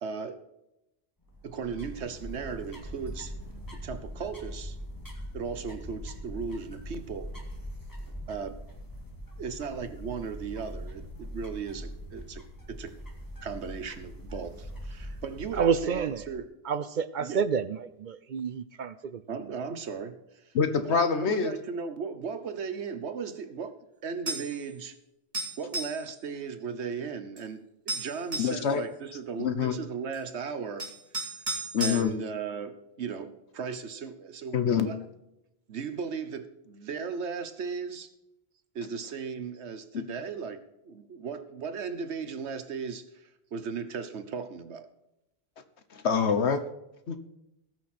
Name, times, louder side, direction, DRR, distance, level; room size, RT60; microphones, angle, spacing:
voice 1, 0.0-0.4 1.4-3.3 3.8-4.8 5.3-7.3 8.3-8.6 9.4-12.4 12.7-12.9 13.4-16.5 17.2-17.4 19.3-20.2 20.8-23.8 24.0-25.0 25.6-30.9 31.8-35.0 35.7-38.1 38.7-44.9, right 6 dB, 85° right, 10 dB, 1.3 m, -36 dB
sound 1, 1.2-16.5, equal, 20° left, 2.0 m, -42 dB
voice 2, 15.6-16.2 16.7-19.2, right 6 dB, 55° right, 15 dB, 0.6 m, -29 dB
voice 3, 20.5-21.5 28.4-28.8 29.4-29.7 31.7-32.2 34.5-34.9 39.9-40.0 45.9-46.6 47.1-47.2, left 6 dB, 80° left, 10 dB, 1.3 m, -25 dB
sound 2, 24.3-24.6 25.3-26.0 27.4-27.5 27.9-28.6 30.1-30.2 30.8-32.0, right 3 dB, 35° right, 3.1 m, -33 dB
18.5 x 6.3 x 4.3 m, 0.89 s
omnidirectional pair, 1.1 m